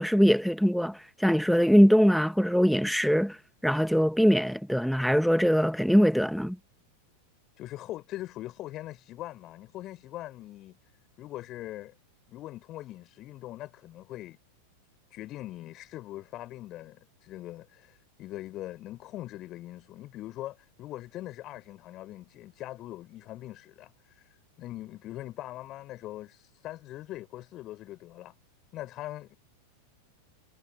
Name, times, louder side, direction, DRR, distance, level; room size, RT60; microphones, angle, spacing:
voice 1, 0.0-3.4 3.6-6.6, equal, ahead, 1.4 m, -22 dB
voice 2, 7.6-10.8 11.2-11.9 12.3-14.4 15.1-24.3 24.6-28.4 28.7-29.4, left 15 dB, 35° left, 5.3 m, -41 dB
figure-of-eight pair, 90°, 0 cm